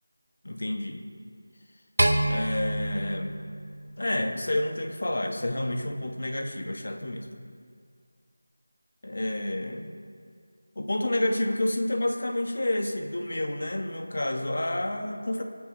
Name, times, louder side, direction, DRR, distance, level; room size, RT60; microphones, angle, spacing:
voice 1, 0.4-1.0 2.2-3.4 4.0-7.3 9.0-9.9 10.7-15.4, left 1 dB, 55° left, 4 dB, 1.6 m, -29 dB
sound 1, 2.0-4.4, right 1 dB, 80° right, 1.6 m, -27 dB
25.0 x 8.6 x 3.3 m, 2.2 s
figure-of-eight pair, 175°, 0 cm